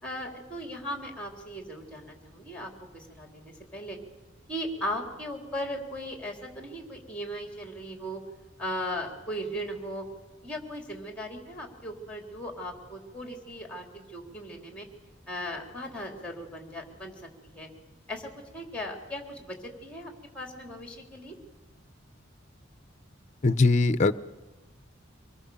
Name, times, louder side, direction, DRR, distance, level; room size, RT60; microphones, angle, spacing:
voice 1, 0.0-4.0 4.5-8.2 8.6-10.0 10.4-14.9 15.3-17.1 17.4-17.7 18.1-21.3, equal, 5° left, 3.5 m, -37 dB
voice 2, 23.4-24.1, left 3 dB, 35° left, 0.7 m, -21 dB
25.0 x 21.5 x 7.1 m
head